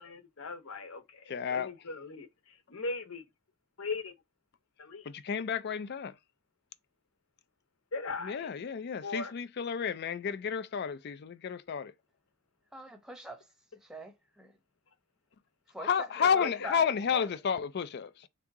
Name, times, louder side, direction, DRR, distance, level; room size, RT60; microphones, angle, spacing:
voice 1, 0.0-3.2 3.8-4.1 4.8-5.1 7.9-8.5 9.0-9.3 16.2-16.7, left 3 dB, 65° left, 0.9 m, -39 dB
voice 2, 1.3-1.7 5.1-6.2 8.2-11.9 15.8-18.3, left 7 dB, 45° left, 0.4 m, -31 dB
voice 3, 12.7-13.4 13.8-14.5 15.7-17.2, right 1 dB, 5° right, 0.8 m, -45 dB
3.5 x 2.8 x 4.7 m
head